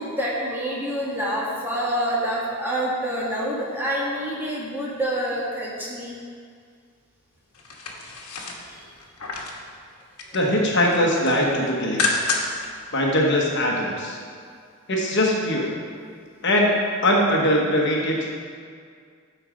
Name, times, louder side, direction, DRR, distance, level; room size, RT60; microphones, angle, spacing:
voice 1, 0.0-6.2 8.7-8.9, equal, 10° right, -5 dB, 1.4 m, -27 dB
sound 1, 7.5-9.6 10.0-10.5 10.8-12.7 13.0-13.1, left 3 dB, 90° left, 1.3 m, -29 dB
voice 2, 10.3-12.2 12.9-14.2 14.9-15.8 16.4-16.8 17.0-18.2, left 1 dB, 50° left, -2 dB, 1.2 m, -21 dB
12.5 x 4.5 x 5.1 m, 2.1 s
head